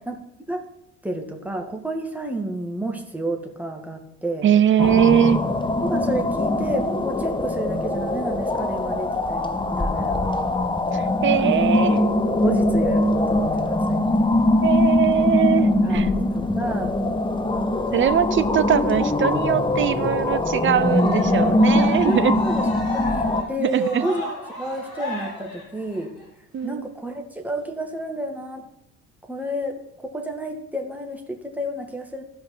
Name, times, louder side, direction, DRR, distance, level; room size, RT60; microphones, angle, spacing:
voice 1, 1.0-4.5 5.8-10.3 11.4-11.9 12.3-14.0 15.8-17.0 21.7-24.2 24.6-26.2 26.6-28.6 29.3-32.2, right 1 dB, 5° right, 2 dB, 1.7 m, -30 dB
voice 2, 4.4-5.4 10.9-12.0 14.6-16.1 17.9-22.4 23.6-24.1 26.5-26.9, right 9 dB, 30° right, 12 dB, 0.6 m, -21 dB
sound 1, 4.8-23.4, left 2 dB, 10° left, 0.8 m, -22 dB
Cheering, 20.7-26.2, equal, 45° left, 4.2 m, -36 dB
15.0 x 5.2 x 4.3 m, 0.83 s
figure-of-eight pair, 55°, 39 cm